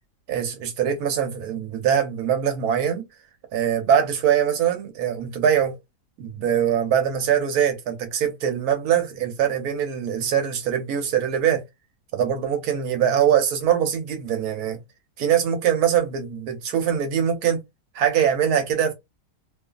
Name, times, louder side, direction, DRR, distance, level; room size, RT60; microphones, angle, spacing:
voice 1, 0.3-3.0 3.5-5.8 6.2-11.6 12.1-14.8 15.2-17.6 17.9-18.9, right 9 dB, 70° right, 1.2 m, -22 dB
2.6 x 2.5 x 2.3 m
omnidirectional pair, 1.8 m